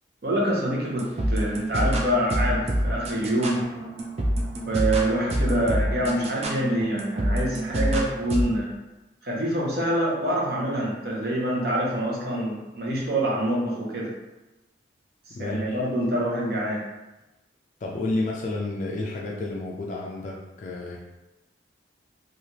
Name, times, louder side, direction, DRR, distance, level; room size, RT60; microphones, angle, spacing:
voice 1, 0.2-3.6 4.6-8.7 9.2-14.1 15.3-16.8, right 1 dB, 55° right, -4 dB, 0.8 m, -26 dB
sound 1, 1.0-8.4, right 1 dB, 35° right, 0.3 m, -27 dB
voice 2, 15.3-15.8 17.8-21.0, left 2 dB, 40° left, -3 dB, 0.3 m, -30 dB
3.2 x 2.4 x 2.8 m, 1.0 s
head